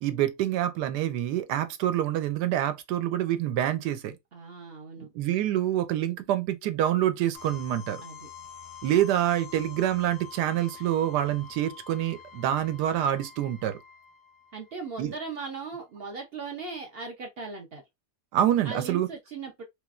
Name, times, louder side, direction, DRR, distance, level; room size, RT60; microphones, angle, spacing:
voice 1, 0.0-4.2 5.1-8.0 8.8-13.8 15.0-15.1 18.3-19.1, right 12 dB, 80° right, 1.2 m, -26 dB
voice 2, 4.3-5.1 8.0-8.3 14.5-17.8 18.6-19.6, right 4 dB, 65° right, 0.6 m, -38 dB
sound 1, 7.3-15.1, left 7 dB, 55° left, 0.7 m, -47 dB
3.3 x 3.1 x 2.4 m
omnidirectional pair, 1.8 m